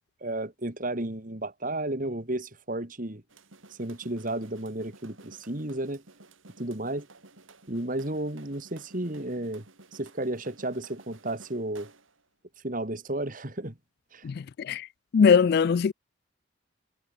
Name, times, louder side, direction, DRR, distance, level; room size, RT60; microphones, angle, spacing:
voice 1, 0.2-3.2 3.8-6.0 6.6-7.1 7.7-9.6 9.9-11.9 12.6-13.8 14.1-14.3, right 1 dB, 40° right, 2.2 m, -33 dB
sound 1, 3.3-12.2, right 2 dB, 75° right, 4.6 m, -53 dB
voice 2, 14.2-14.9 15.1-15.9, left 6 dB, 50° left, 0.3 m, -21 dB
head